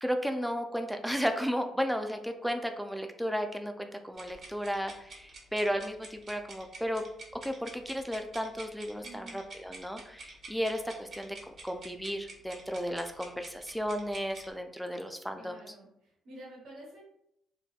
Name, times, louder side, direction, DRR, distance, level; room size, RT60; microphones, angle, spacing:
voice 1, 0.0-7.0 7.4-15.6, equal, ahead, 5 dB, 0.3 m, -34 dB
sound 1, 4.1-14.5, right 3 dB, 50° right, 0.7 m, -48 dB
voice 2, 9.0-9.4 15.3-17.1, right 1 dB, 80° right, -3 dB, 1.0 m, -49 dB
2.7 x 2.1 x 2.3 m, 0.77 s
cardioid pair, 90°, 0 cm